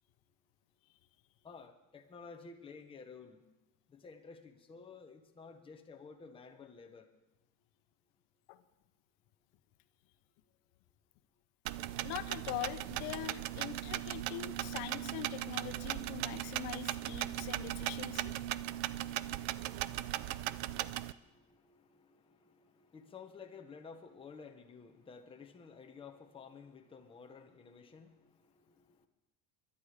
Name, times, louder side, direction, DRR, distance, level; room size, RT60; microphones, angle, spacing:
voice 1, 1.4-3.4 3.9-7.1 20.1-29.1, left 5 dB, 15° left, 4 dB, 1.0 m, -53 dB
sound 1, 11.6-21.1, right 14 dB, 75° right, 0.6 m, -38 dB
voice 2, 12.0-18.3, left 14 dB, 90° left, 11 dB, 1.1 m, -43 dB
21.5 x 11.5 x 5.0 m, 1.0 s
cardioid pair, 170°, 42 cm